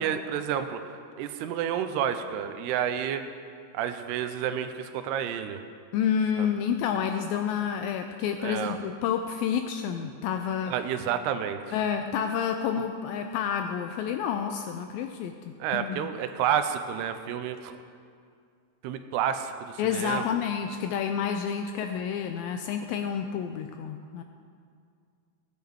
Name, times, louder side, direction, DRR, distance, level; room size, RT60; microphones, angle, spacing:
voice 1, 0.0-3.3 3.7-5.6 6.4-6.5 8.4-8.8 10.7-11.8 15.6-17.8 18.8-20.3, right 9 dB, 90° right, 9 dB, 2.6 m, -30 dB
voice 2, 5.9-10.7 11.7-16.1 19.8-24.2, left 8 dB, 90° left, 6 dB, 2.0 m, -29 dB
18.0 x 9.4 x 3.5 m, 2.2 s
omnidirectional pair, 4.7 m